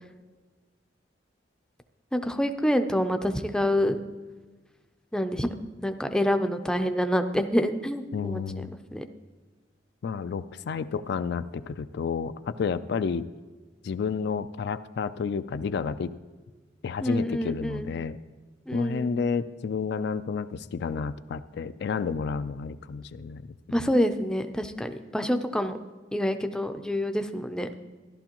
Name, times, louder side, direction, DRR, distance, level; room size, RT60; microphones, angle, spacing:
voice 1, 2.1-4.0 5.1-5.5 5.8-9.0 17.0-17.9 18.7-19.2 23.7-25.8 26.1-27.7, equal, 5° left, 7 dB, 0.5 m, -27 dB
voice 2, 8.1-8.7 10.0-13.3 13.8-16.1 16.8-18.2 18.7-23.4 23.7-23.9, left 5 dB, 60° left, 12 dB, 0.3 m, -30 dB
14.0 x 11.5 x 3.0 m, 1.3 s
head